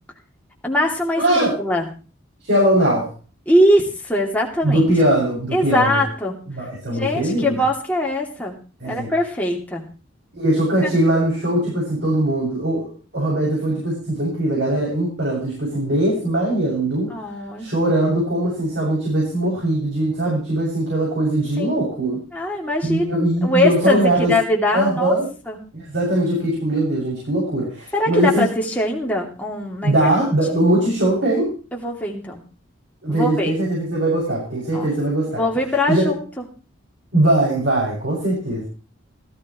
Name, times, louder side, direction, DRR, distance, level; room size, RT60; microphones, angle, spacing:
voice 1, 0.6-1.9 3.5-4.9 5.5-6.4 6.9-8.6 8.8-9.8 10.8-10.9 17.1-17.7 21.6-21.8 22.3-25.1 25.5-25.6 27.9-30.0 30.5-30.6 31.7-32.4 33.1-33.5 34.7-34.9 35.3-36.4, left 1 dB, 5° left, -1 dB, 2.8 m, -22 dB
voice 2, 1.2-1.5 2.4-3.1 4.6-6.0 6.5-7.6 8.8-9.1 10.3-17.1 17.6-22.2 22.8-24.3 24.7-25.3 25.7-28.5 29.8-31.5 33.0-35.4 35.9-36.1 37.1-38.7, right 1 dB, 60° right, -4 dB, 7.0 m, -20 dB
18.0 x 15.0 x 3.2 m, 0.35 s
head